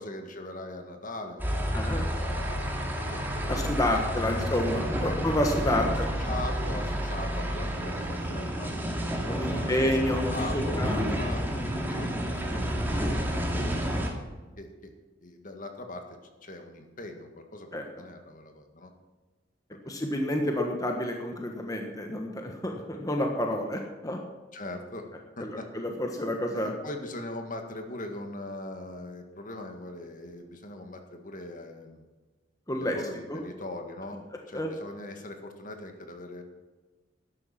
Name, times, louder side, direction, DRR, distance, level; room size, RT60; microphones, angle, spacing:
voice 1, 0.0-3.5 3.8-5.2 5.7-8.8 9.4-14.2 14.6-14.9 15.2-16.1 16.4-17.7 18.0-18.9 19.9-20.0 24.5-25.1 25.4-25.7 26.5-32.1 32.8-36.4, left 1 dB, 45° left, 5 dB, 1.8 m, -41 dB
sound 1, 1.4-14.1, equal, 10° right, 2.3 m, -30 dB
voice 2, 1.7-2.1 3.5-6.2 9.2-11.2 17.7-17.8 19.9-24.2 25.4-26.7 32.7-33.0 33.3-33.4 34.5-34.7, left 1 dB, 20° left, 2 dB, 1.3 m, -29 dB
12.5 x 11.0 x 5.9 m, 1.3 s
head